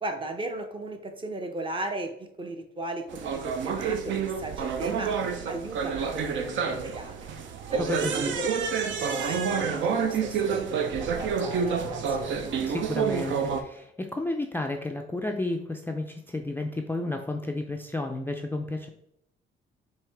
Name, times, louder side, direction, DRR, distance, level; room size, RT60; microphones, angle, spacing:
voice 1, 0.0-7.3 7.7-8.5 8.8-12.5, right 2 dB, 25° right, 5 dB, 0.7 m, -36 dB
sound 1, 3.1-13.6, right 6 dB, 70° right, 0.5 m, -28 dB
voice 2, 7.8-8.3 12.7-18.9, left 2 dB, 10° left, 3 dB, 0.3 m, -32 dB
4.6 x 2.7 x 3.4 m, 0.75 s
cardioid pair, 90°, 20 cm